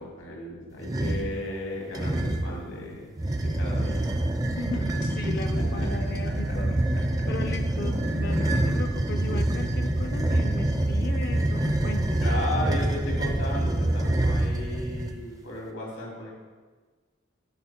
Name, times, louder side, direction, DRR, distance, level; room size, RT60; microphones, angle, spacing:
voice 1, 0.0-3.1 3.4-4.3 5.5-7.3 8.1-8.3 12.2-16.3, left 1 dB, 90° left, -2 dB, 2.5 m, -36 dB
sound 1, 0.8-1.3 1.9-2.6 3.2-15.2, right 1 dB, 15° right, 0.4 m, -26 dB
voice 2, 4.6-6.7 7.3-12.2 12.5-12.7, left 2 dB, 50° left, 7 dB, 0.5 m, -36 dB
9.8 x 5.4 x 4.4 m, 1.4 s
head